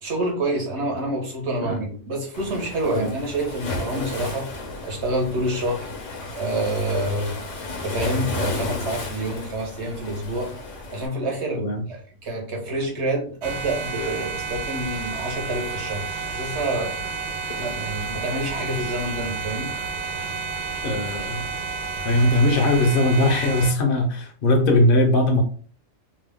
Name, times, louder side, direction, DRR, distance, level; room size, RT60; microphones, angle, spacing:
voice 1, 0.0-4.5 4.8-5.9 6.3-7.4 7.8-10.5 10.9-17.0 17.5-19.7, right 1 dB, 65° right, 1 dB, 1.2 m, -27 dB
Waves surf, 2.3-11.1, left 2 dB, 80° left, 1.2 m, -33 dB
sound 1, 13.4-23.7, right 4 dB, 85° right, 0.9 m, -31 dB
voice 2, 20.8-21.4 22.0-25.4, left 1 dB, 55° left, 5 dB, 0.7 m, -20 dB
2.9 x 2.0 x 3.4 m, 0.42 s
omnidirectional pair, 1.3 m